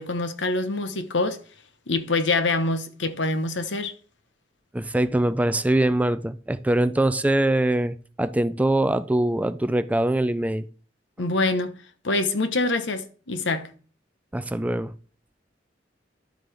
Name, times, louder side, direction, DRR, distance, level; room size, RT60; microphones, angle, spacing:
voice 1, 0.0-1.4 1.9-3.9 11.2-11.7 12.0-13.7, left 2 dB, 80° left, 1.1 m, -25 dB
voice 2, 4.7-10.6 14.3-14.9, right 1 dB, 10° right, 0.3 m, -23 dB
12.0 x 7.8 x 3.4 m
head